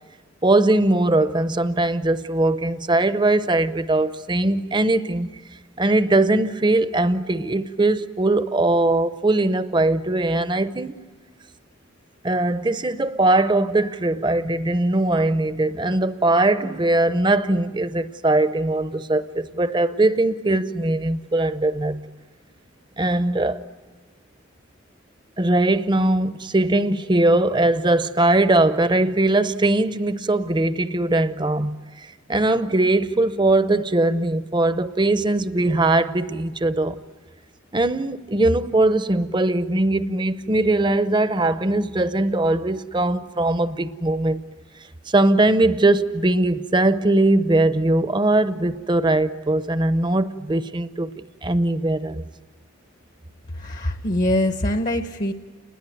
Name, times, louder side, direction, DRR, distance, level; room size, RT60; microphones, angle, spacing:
voice 1, 0.4-5.3 5.8-11.0 12.2-22.1 23.0-23.6 25.4-37.0 37.7-44.4 45.1-51.1 51.4-52.2, right 2 dB, 20° right, 0.7 m, -20 dB
voice 2, 53.5-55.3, left 1 dB, 40° left, 0.9 m, -23 dB
30.0 x 20.5 x 9.3 m
head